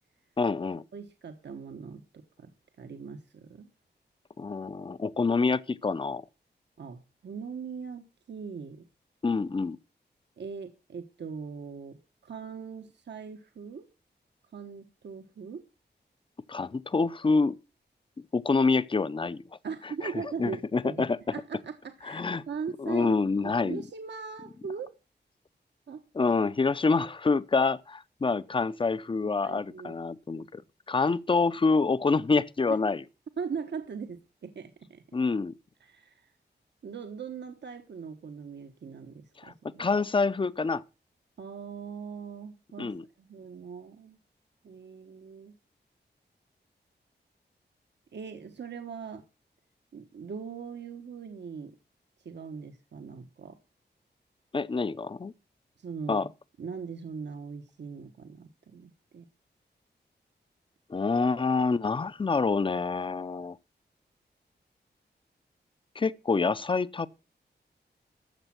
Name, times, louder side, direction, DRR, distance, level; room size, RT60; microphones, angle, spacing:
voice 1, 0.4-0.8 4.4-6.2 9.2-9.8 16.5-17.6 18.3-19.4 20.4-21.2 22.0-22.4 22.8-23.8 26.1-30.6 30.9-33.0 35.1-35.5 39.4-39.5 39.8-40.8 42.8-43.0 54.5-55.3 56.1-56.3 60.9-63.6 66.0-67.1, left 4 dB, 30° left, 0.6 m, -26 dB
voice 2, 0.9-2.5 2.8-3.7 6.8-8.9 10.4-13.9 14.5-15.6 19.6-21.0 21.3-23.2 23.4-24.9 25.9-26.0 29.2-30.0 32.7-32.8 33.4-35.2 35.8-36.3 36.8-39.8 41.4-42.9 43.2-44.2 44.6-45.5 48.1-49.2 49.9-51.7 52.2-53.6 55.8-56.3 56.6-59.3, right 6 dB, 75° right, 1.2 m, -40 dB
13.5 x 7.3 x 5.9 m
wide cardioid pair, 125°, 18 cm